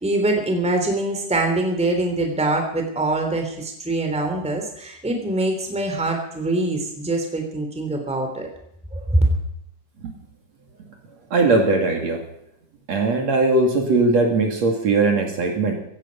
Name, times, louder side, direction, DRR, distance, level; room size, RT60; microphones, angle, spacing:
voice 1, 0.0-8.5 8.9-9.3, right 2 dB, ahead, 3 dB, 2.8 m, -23 dB
voice 2, 11.3-12.2 12.9-15.7, right 3 dB, 55° right, 2 dB, 3.4 m, -19 dB
16.0 x 16.0 x 5.3 m, 0.77 s
omnidirectional pair, 3.8 m